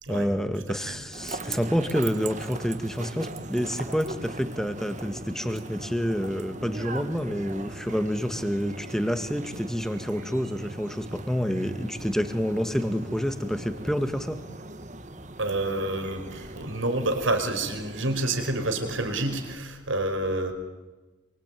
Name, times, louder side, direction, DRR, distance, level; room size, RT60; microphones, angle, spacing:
voice 1, 0.1-14.4, equal, ahead, 9 dB, 1.6 m, -28 dB
voice 2, 0.7-1.0 15.4-20.5, right 2 dB, 75° right, 6 dB, 4.9 m, -28 dB
sound 1, 1.1-19.6, right 2 dB, 35° right, 1.7 m, -40 dB
27.0 x 24.0 x 9.2 m, 1.2 s
head